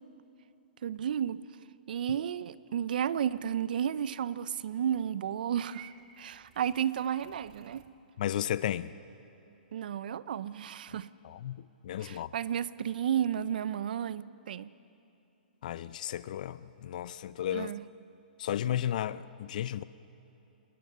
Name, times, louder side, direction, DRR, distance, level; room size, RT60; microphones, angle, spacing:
voice 1, 0.8-1.4 1.9-5.9 6.2-7.8 9.7-11.1 12.0-14.7 17.5-17.8, right 9 dB, 60° right, 17 dB, 0.6 m, -32 dB
Purr / Meow, 5.7-7.9, right 10 dB, 40° right, 1.5 m, -55 dB
voice 2, 8.2-8.9 11.2-12.3 15.6-17.7 18.4-19.8, left 11 dB, 50° left, 16 dB, 0.6 m, -34 dB
27.0 x 19.5 x 6.7 m, 2.9 s
hypercardioid pair, 150°, 5 cm